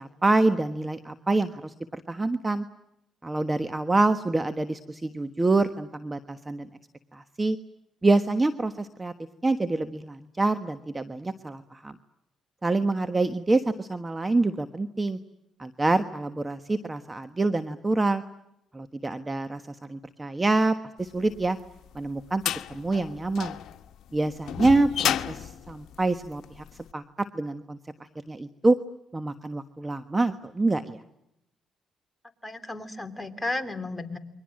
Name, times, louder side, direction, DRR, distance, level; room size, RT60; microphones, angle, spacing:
voice 1, 0.0-2.6 3.2-6.7 7.1-7.6 8.0-9.1 9.4-11.9 12.6-15.2 15.6-18.2 18.7-21.6 21.9-22.4 22.7-23.6 24.1-26.6 26.9-27.8 28.3-28.8 29.1-31.0, right 2 dB, 20° right, 10 dB, 1.3 m, -26 dB
sound 1, 21.4-26.7, left 10 dB, 75° left, 1.2 m, -32 dB
voice 2, 32.4-34.2, left 2 dB, 10° left, 6 dB, 3.2 m, -33 dB
29.0 x 23.5 x 7.7 m, 0.82 s
cardioid pair, 90°, 0 cm